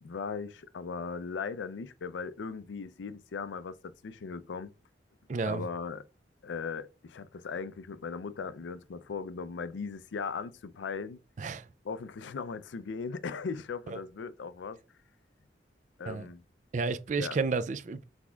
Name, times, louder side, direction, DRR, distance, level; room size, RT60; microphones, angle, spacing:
voice 1, 0.0-4.7 5.5-6.1 6.4-11.2 11.8-14.8 16.0-16.4 17.2-17.4, left 5 dB, 85° left, 0.4 m, -38 dB
voice 2, 5.3-5.6 11.4-11.6 13.9-14.0 16.1-16.3 16.7-18.0, right 4 dB, 40° right, 0.3 m, -31 dB
6.1 x 3.5 x 2.3 m
head